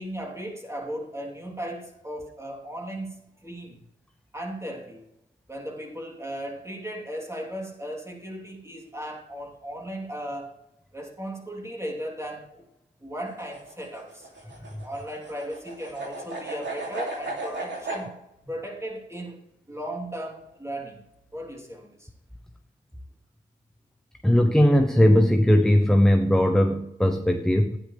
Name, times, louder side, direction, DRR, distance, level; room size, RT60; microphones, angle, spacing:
voice 1, 0.0-3.8 4.3-5.1 5.5-10.6 10.9-12.6 13.0-18.2 18.5-21.0 21.3-22.1, equal, 15° right, -1 dB, 3.3 m, -36 dB
sound 1, 13.3-18.0, right 2 dB, 70° right, 2.9 m, -35 dB
voice 2, 24.2-27.8, equal, 5° left, 6 dB, 0.8 m, -19 dB
12.5 x 9.6 x 3.4 m, 0.85 s
cardioid pair, 50°, 19 cm